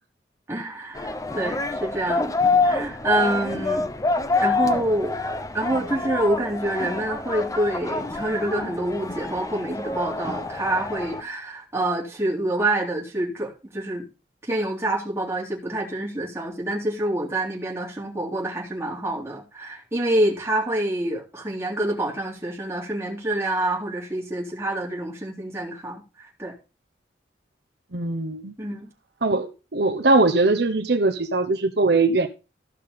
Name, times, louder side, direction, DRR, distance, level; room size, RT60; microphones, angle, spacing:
voice 1, 0.5-2.3 2.6-3.9 4.4-5.1 5.5-14.0 14.5-26.0 26.4-26.5 28.6-28.9, right 1 dB, 15° right, 3.3 m, -27 dB
sound 1, 1.0-11.2, left 3 dB, 20° left, 0.8 m, -27 dB
voice 2, 27.9-28.5 29.2-32.3, right 3 dB, 65° right, 1.0 m, -21 dB
15.0 x 5.8 x 5.3 m
head